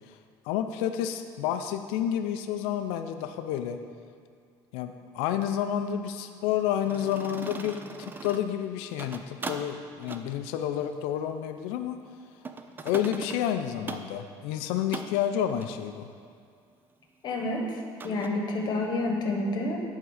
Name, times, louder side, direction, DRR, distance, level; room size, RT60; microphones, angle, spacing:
voice 1, 0.4-3.8 4.7-12.0 12.8-16.1, left 10 dB, 90° left, 8 dB, 0.5 m, -30 dB
sound 1, 6.9-8.6 8.9-9.7 10.0-10.3 12.4-13.5 13.9-14.1 14.9-15.2 15.5-15.7 18.0-18.3, right 3 dB, 20° right, 0.4 m, -39 dB
voice 2, 17.2-19.8, left 2 dB, 45° left, 2 dB, 1.2 m, -29 dB
11.0 x 3.7 x 4.8 m, 2.3 s
cardioid pair, 120°, 10 cm